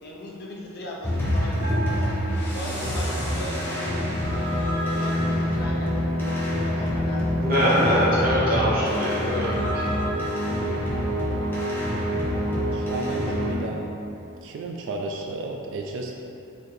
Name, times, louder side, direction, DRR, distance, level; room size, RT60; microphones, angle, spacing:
voice 1, 0.0-2.1 2.4-4.6 4.9-8.1 8.8-9.1, left 1 dB, 50° left, -3 dB, 0.6 m, -39 dB
sound 1, 1.0-13.5, equal, 10° left, 0.6 m, -26 dB
Bell, 1.6-3.2, right 3 dB, 80° right, 1.0 m, -36 dB
voice 2, 7.4-9.5 9.7-9.8, equal, 45° right, -9 dB, 1.0 m, -22 dB
voice 3, 12.7-13.9 14.4-16.1, right 2 dB, 60° right, 1 dB, 0.3 m, -33 dB
4.2 x 2.7 x 3.1 m, 2.7 s
head